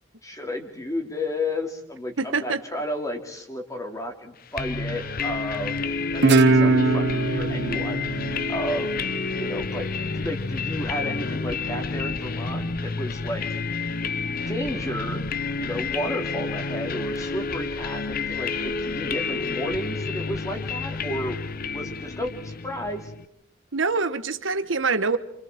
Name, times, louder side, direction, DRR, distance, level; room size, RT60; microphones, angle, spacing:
voice 1, 0.2-8.1 8.5-9.0 9.4-9.9 10.1-13.6 14.5-15.2 15.6-21.4 21.7-23.1, left 1 dB, 15° left, 4 dB, 2.7 m, -32 dB
voice 2, 2.2-2.6 23.7-25.2, right 4 dB, 90° right, 11 dB, 1.3 m, -25 dB
sound 1, 4.6-23.3, left 4 dB, 50° left, 0.8 m, -29 dB
Guitar, 6.2-9.5, right 3 dB, 65° right, 0.8 m, -21 dB
28.0 x 27.5 x 4.5 m, 0.75 s
head